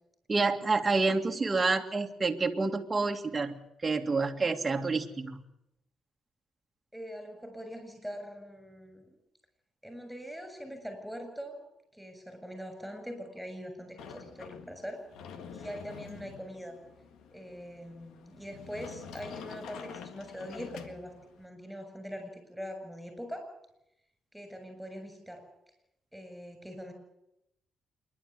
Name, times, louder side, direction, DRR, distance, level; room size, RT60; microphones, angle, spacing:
voice 1, 0.3-5.4, right 3 dB, 25° right, 2 dB, 2.0 m, -28 dB
voice 2, 6.9-9.2 9.8-11.6 11.9-15.0 15.5-16.8 17.3-23.5 24.3-25.4 26.1-26.9, equal, ahead, 7 dB, 7.5 m, -42 dB
Sliding door, 14.0-21.4, left 7 dB, 80° left, 1.7 m, -47 dB
26.5 x 11.5 x 9.6 m, 0.83 s
cardioid pair, 90°, 0 cm